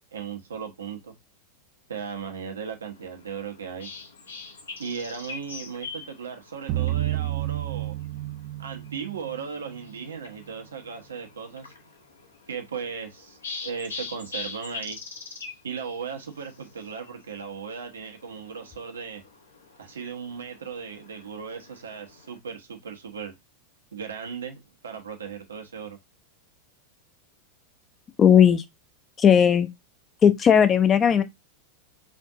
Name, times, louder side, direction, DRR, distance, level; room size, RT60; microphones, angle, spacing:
voice 1, 0.1-1.1 1.9-3.9 4.8-7.9 8.6-11.7 12.5-15.0 15.6-19.2 19.8-23.3 23.9-26.0, right 6 dB, 70° right, 0.9 m, -37 dB
sound 1, 2.9-22.4, left 4 dB, 70° left, 0.9 m, -44 dB
sound 2, 6.7-9.8, right 15 dB, 40° right, 0.3 m, -30 dB
voice 2, 28.2-28.6 29.2-29.7 30.2-31.2, left 8 dB, 25° left, 0.5 m, -16 dB
4.4 x 2.6 x 3.6 m
figure-of-eight pair, 90°, 0 cm